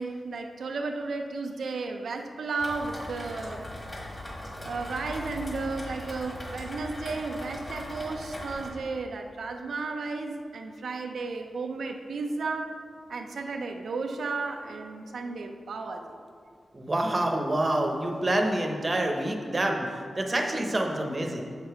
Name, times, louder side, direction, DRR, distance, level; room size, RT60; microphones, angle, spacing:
voice 1, 0.0-3.6 4.6-12.8 13.1-16.1, right 3 dB, 85° right, 3 dB, 0.5 m, -33 dB
Rain, 2.6-8.7, left 1 dB, 25° left, 1.4 m, -39 dB
voice 2, 16.7-21.4, right 1 dB, 30° right, 2 dB, 0.8 m, -27 dB
7.2 x 6.7 x 4.7 m, 2.2 s
wide cardioid pair, 145°, 0 cm